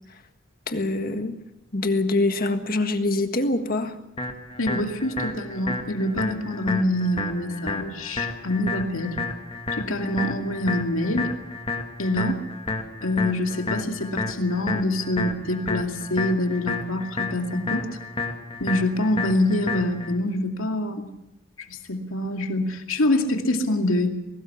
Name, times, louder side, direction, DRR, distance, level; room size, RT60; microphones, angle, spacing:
voice 1, 0.7-1.4 1.7-4.0, left 2 dB, 45° left, 7 dB, 1.7 m, -24 dB
sound 1, 4.2-20.2, left 3 dB, 30° left, 2.0 m, -31 dB
voice 2, 4.6-9.2 9.8-11.3 12.0-12.4 13.0-17.9 18.6-21.1 21.6-24.2, left 1 dB, 85° left, 4 dB, 2.4 m, -25 dB
21.5 x 18.5 x 7.2 m, 0.90 s
head